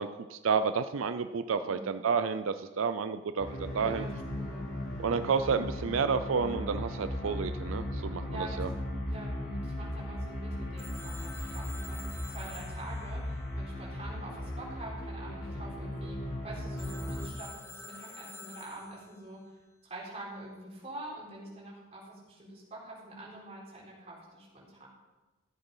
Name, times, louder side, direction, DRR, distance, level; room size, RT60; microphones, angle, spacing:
voice 1, 0.0-4.1 5.0-8.7, right 5 dB, 85° right, 11 dB, 0.5 m, -30 dB
voice 2, 1.6-1.9 3.8-4.1 4.3-4.7 8.3-8.6 9.1-19.4 19.8-24.9, right 1 dB, 30° right, -5 dB, 4.2 m, -45 dB
sound 1, 3.4-17.3, left 1 dB, 60° left, 2.9 m, -37 dB
Telephone, 10.8-14.4 16.8-19.3, left 3 dB, 15° left, 0.8 m, -49 dB
14.5 x 8.0 x 5.5 m, 1.2 s
head